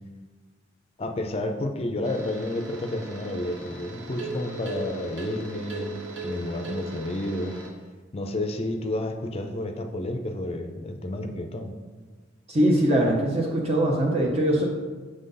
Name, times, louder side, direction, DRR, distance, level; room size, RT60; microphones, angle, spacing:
voice 1, 1.0-7.6 8.1-11.7, left 1 dB, 30° left, 6 dB, 0.5 m, -31 dB
sound 1, 2.0-7.7, right 2 dB, 75° right, 1.3 m, -38 dB
voice 2, 12.5-14.6, right 1 dB, 35° right, -1 dB, 0.6 m, -22 dB
6.3 x 3.9 x 3.8 m, 1.4 s
head